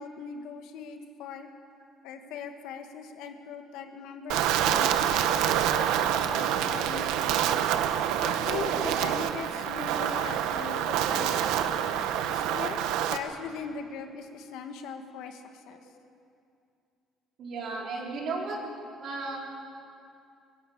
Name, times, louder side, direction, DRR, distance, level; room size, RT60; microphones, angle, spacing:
voice 1, 0.0-1.5 2.0-4.9 5.3-7.6 8.2-11.7 12.3-15.8, left 6 dB, 75° left, 6 dB, 1.6 m, -40 dB
Wind, 4.3-13.2, right 10 dB, 90° right, 1.0 m, -27 dB
voice 2, 17.4-18.6 19.0-19.4, right 3 dB, 45° right, -2 dB, 4.0 m, -34 dB
22.5 x 13.5 x 8.8 m, 2.4 s
cardioid pair, 160°, 0 cm